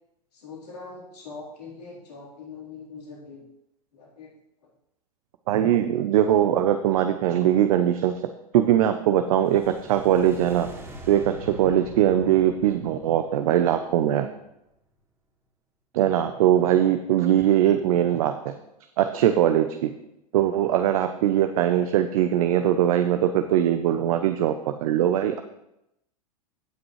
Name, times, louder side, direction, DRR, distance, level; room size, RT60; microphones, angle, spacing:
voice 1, 0.3-3.4 3.9-4.3, left 4 dB, 75° left, -4 dB, 3.9 m, -42 dB
voice 2, 5.5-8.2 8.5-9.6 9.9-10.7 11.1-14.3 15.9-18.5 19.0-19.9 20.3-25.4, right 11 dB, 60° right, 8 dB, 0.7 m, -21 dB
sound 1, 9.2-14.4, right 1 dB, 10° right, 2.4 m, -44 dB
17.0 x 6.1 x 3.2 m, 0.85 s
hypercardioid pair, 100°, 20 cm